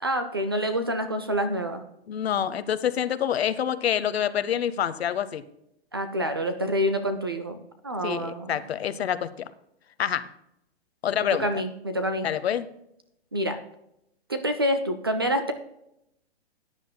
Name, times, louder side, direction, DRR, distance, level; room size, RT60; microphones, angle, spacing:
voice 1, 0.0-1.8 5.9-7.6 7.8-8.6 11.4-12.3 13.3-13.6 14.3-15.5, equal, 25° right, 8 dB, 0.4 m, -27 dB
voice 2, 2.1-5.4 8.0-9.5 10.0-10.3 11.0-11.5 12.2-12.7, left 9 dB, 70° left, 14 dB, 0.9 m, -27 dB
17.0 x 9.9 x 2.2 m, 0.81 s
hypercardioid pair, 170°, 32 cm